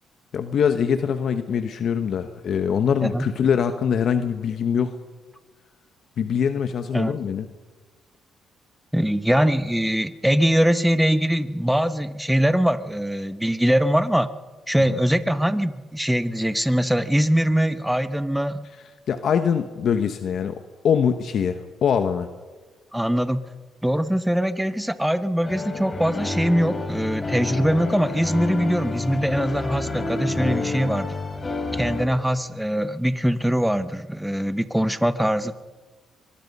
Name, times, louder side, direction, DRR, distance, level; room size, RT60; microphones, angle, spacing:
voice 1, 0.3-5.0 6.2-7.5 14.9-15.0 19.1-22.3, left 7 dB, 60° left, 8 dB, 1.1 m, -23 dB
voice 2, 8.9-14.3 14.7-18.7 22.9-23.4 23.8-31.1 31.7-35.5, equal, 5° right, 12 dB, 1.1 m, -22 dB
sound 1, 25.4-32.1, left 3 dB, 30° left, 4.0 m, -29 dB
24.0 x 21.5 x 5.5 m, 1.3 s
cardioid pair, 90°, 0 cm